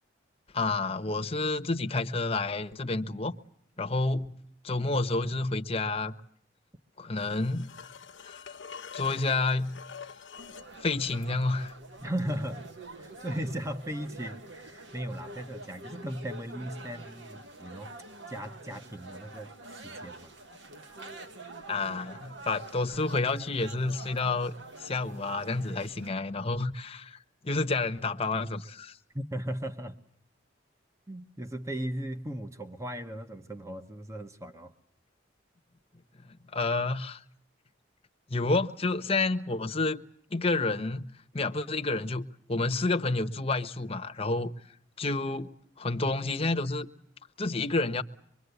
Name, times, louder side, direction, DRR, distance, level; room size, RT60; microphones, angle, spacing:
voice 1, 0.5-3.3 3.8-4.3 4.6-6.1 7.0-7.7 8.2-8.6 8.9-9.8 10.8-11.7 21.7-24.5 24.8-29.0 36.5-37.2 38.3-40.0 40.3-44.5 45.0-45.5 45.8-46.9 47.4-48.0, left 3 dB, 30° left, 1.0 m, -29 dB
sound 1, 7.1-10.7 13.6-13.7, left 6 dB, 80° left, 1.0 m, -46 dB
sound 2, 10.4-26.1, right 2 dB, 65° right, 1.5 m, -47 dB
voice 2, 12.0-17.9 18.3-20.3 29.1-30.0 31.1-34.7, right 1 dB, 15° right, 1.0 m, -37 dB
25.0 x 22.5 x 8.1 m
head